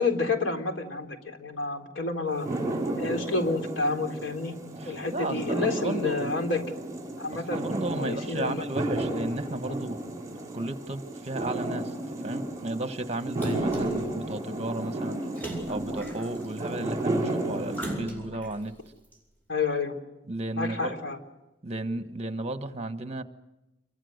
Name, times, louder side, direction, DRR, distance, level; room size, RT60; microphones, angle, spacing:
voice 1, 0.0-2.5 3.0-4.6 4.8-6.7 7.2-7.7 8.0-8.6 19.5-19.9 20.6-21.2, left 3 dB, 85° left, 5 dB, 3.8 m, -29 dB
sound 1, 2.3-18.0, right 1 dB, 15° right, 5.7 m, -33 dB
voice 2, 4.8-6.4 7.3-10.0 10.5-15.2 15.7-18.7 20.3-20.9 21.6-23.2, right 2 dB, 35° right, 9 dB, 1.4 m, -34 dB
Splash splatter, 13.4-14.0 15.3-16.6 17.7-18.5 19.1-19.2, right 1 dB, 10° left, 7.8 m, -36 dB
28.5 x 24.0 x 6.6 m, 0.99 s
head